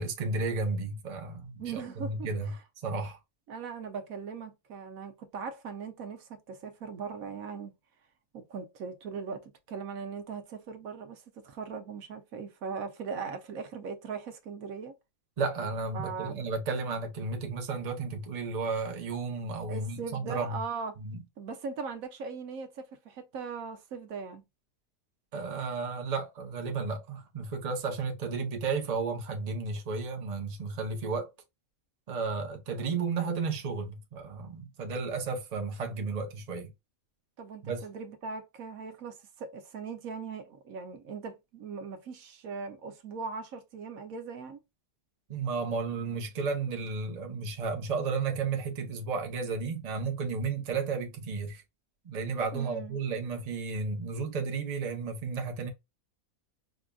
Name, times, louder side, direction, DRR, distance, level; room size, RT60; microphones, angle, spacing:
voice 1, 0.0-2.5 2.8-3.2 15.4-20.6 21.0-21.2 25.3-31.3 32.1-36.7 37.6-37.9 45.3-51.6 52.0-55.7, right 4 dB, 35° right, 0.8 m, -33 dB
voice 2, 1.6-2.6 3.5-7.7 8.3-14.9 15.9-16.4 19.7-21.0 21.4-24.4 37.4-44.6 52.5-53.0, right 5 dB, 75° right, 1.2 m, -39 dB
5.0 x 2.4 x 2.3 m
omnidirectional pair, 1.5 m